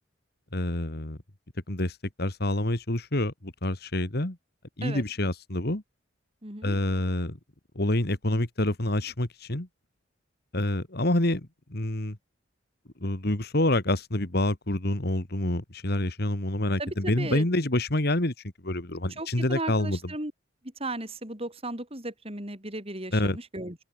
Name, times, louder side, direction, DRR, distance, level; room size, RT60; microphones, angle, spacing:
voice 1, 0.5-1.2 1.7-4.4 4.8-5.8 6.6-7.4 7.8-9.7 10.5-12.2 13.0-18.3 18.6-20.0 23.1-23.4, left 1 dB, 55° left, 2.3 m, -27 dB
voice 2, 6.4-6.8 16.8-17.4 19.2-20.3 20.8-23.8, right 2 dB, 30° right, 6.0 m, -35 dB
open air
head